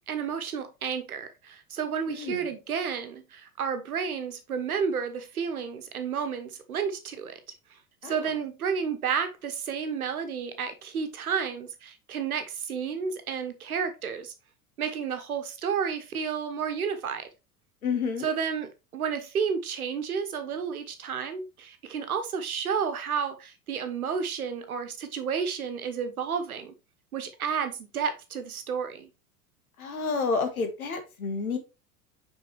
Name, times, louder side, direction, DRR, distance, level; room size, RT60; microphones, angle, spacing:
voice 1, 0.1-7.4 8.0-14.3 14.8-17.3 18.2-26.7 27.1-29.1, right 6 dB, 75° right, 1.2 m, -31 dB
voice 2, 2.1-2.4 8.0-8.1 17.8-18.2 29.8-31.6, left 4 dB, 75° left, 1.7 m, -29 dB
6.0 x 5.4 x 3.1 m
figure-of-eight pair, 80°, 44 cm